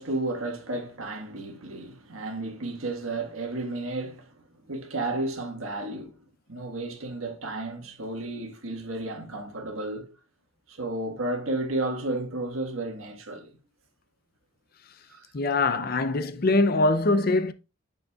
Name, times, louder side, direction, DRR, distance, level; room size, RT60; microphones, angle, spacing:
voice 1, 0.0-4.3 4.6-6.2 6.5-10.1 10.7-13.5 15.1-15.2 15.7-16.1, right 2 dB, 75° right, 1.6 m, -32 dB
voice 2, 15.3-17.5, left 2 dB, 45° left, 0.5 m, -23 dB
8.1 x 6.6 x 2.4 m
head